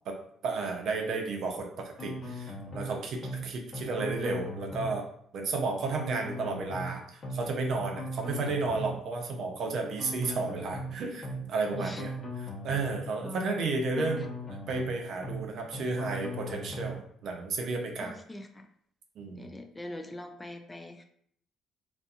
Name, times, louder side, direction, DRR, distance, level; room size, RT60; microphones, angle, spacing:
voice 1, 0.4-5.1 5.3-12.1 12.6-14.3 14.7-18.1 19.2-19.5, right 3 dB, 65° right, 2 dB, 0.5 m, -32 dB
sound 1, 2.0-2.9 3.2-3.4 3.7-5.0 6.0-6.9 7.2-7.4 7.7-9.0 10.0-10.9 11.2-11.4 11.7-13.0 14.0-14.9 15.2-15.4 15.7-17.0, equal, 50° left, 0.9 m, -38 dB
voice 2, 13.2-13.5 13.9-14.3 18.0-18.7 19.3-21.0, left 1 dB, 20° left, 6 dB, 0.4 m, -42 dB
2.6 x 2.4 x 2.4 m, 0.65 s
supercardioid pair, 65°, 0 cm